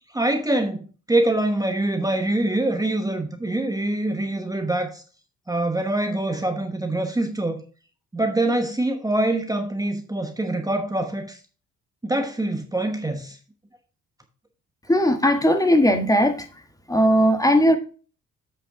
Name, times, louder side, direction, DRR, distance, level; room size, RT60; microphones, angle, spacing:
voice 1, 0.1-0.8 1.1-5.0 5.5-7.6 8.1-11.4 12.0-13.4, right 1 dB, 10° right, 1.1 m, -24 dB
voice 2, 14.9-16.5 16.9-17.8, equal, 10° left, 1.3 m, -18 dB
8.0 x 6.1 x 3.7 m
cardioid pair, 90°, 30 cm